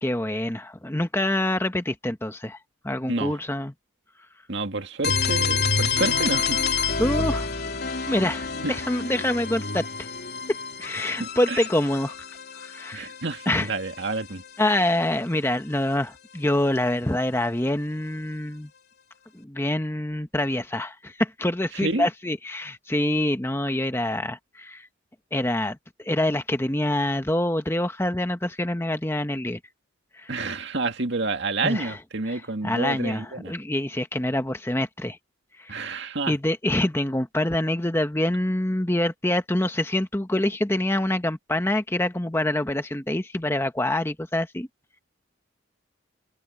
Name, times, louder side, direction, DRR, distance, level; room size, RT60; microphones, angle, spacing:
voice 1, 0.0-2.6 2.8-3.7 7.0-7.5 8.1-10.1 10.8-12.2 12.6-13.1 13.5-13.7 14.6-18.7 19.3-24.9 25.3-29.6 30.2-30.3 31.6-32.0 32.3-35.2 35.6-35.8 36.3-44.7, left 1 dB, 10° left, 0.9 m, -26 dB
voice 2, 3.1-3.4 4.5-6.8 8.6-8.7 11.2-11.7 12.9-14.4 21.7-22.1 30.3-33.5 35.7-36.4, right 3 dB, 55° right, 2.1 m, -29 dB
sound 1, 5.0-14.8, left 4 dB, 50° left, 3.2 m, -28 dB
head